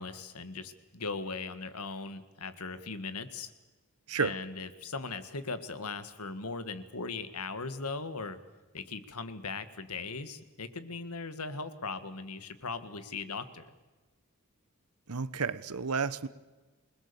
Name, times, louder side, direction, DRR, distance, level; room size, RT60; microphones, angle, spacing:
voice 1, 0.0-3.5 4.2-8.4 8.7-13.7, left 4 dB, 90° left, 11 dB, 1.8 m, -39 dB
voice 2, 15.1-16.3, right 5 dB, 85° right, 16 dB, 1.0 m, -31 dB
28.5 x 21.0 x 7.0 m, 1.2 s
head